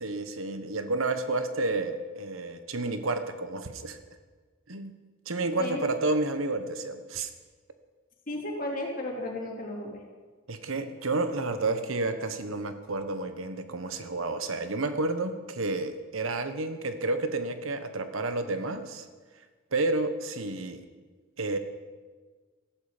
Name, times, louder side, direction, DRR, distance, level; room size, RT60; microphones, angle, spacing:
voice 1, 0.0-4.0 4.7-4.9 5.3-7.3 10.5-19.1 19.7-20.9 21.4-21.6, right 2 dB, 85° right, 9 dB, 1.3 m, -30 dB
voice 2, 8.3-10.0, left 1 dB, 45° left, -1 dB, 3.5 m, -34 dB
18.0 x 15.0 x 5.2 m, 1.4 s
head